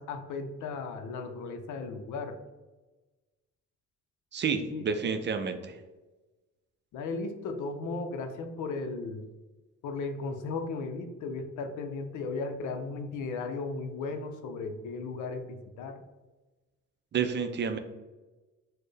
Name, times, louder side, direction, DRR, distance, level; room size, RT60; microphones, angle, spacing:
voice 1, 0.0-2.4 4.7-4.8 6.9-9.2 9.8-16.0, left 3 dB, 80° left, 6 dB, 0.5 m, -36 dB
voice 2, 4.3-5.7 17.1-17.8, right 6 dB, 40° right, 7 dB, 0.4 m, -30 dB
4.2 x 2.1 x 3.2 m, 1.2 s
cardioid pair, 90°, 30 cm